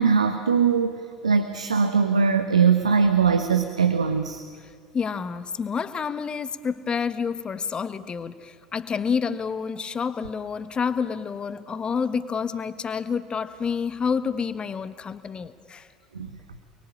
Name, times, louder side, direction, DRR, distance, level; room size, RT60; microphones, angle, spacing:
voice 1, 0.0-4.4 16.1-16.3, right 6 dB, 80° right, 8 dB, 1.3 m, -21 dB
voice 2, 4.9-15.9, left 6 dB, 30° left, 13 dB, 1.5 m, -28 dB
30.0 x 22.0 x 8.8 m, 2.1 s
figure-of-eight pair, 70°, 3 cm